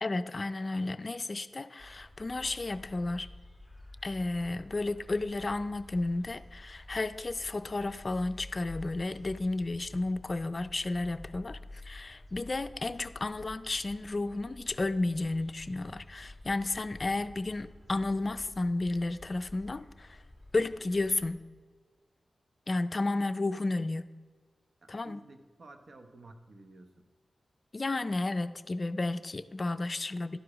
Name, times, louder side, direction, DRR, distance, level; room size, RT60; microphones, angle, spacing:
voice 1, 0.0-3.3 4.0-20.2 20.5-21.4 22.7-24.0 24.9-25.2 27.7-30.4, left 2 dB, 40° left, 12 dB, 0.4 m, -32 dB
sound 1, 1.8-21.4, left 1 dB, ahead, 1.4 m, -50 dB
voice 2, 24.8-27.0, right 2 dB, 65° right, 7 dB, 0.8 m, -53 dB
11.5 x 4.9 x 4.7 m, 1.5 s
wide cardioid pair, 75°, 0 cm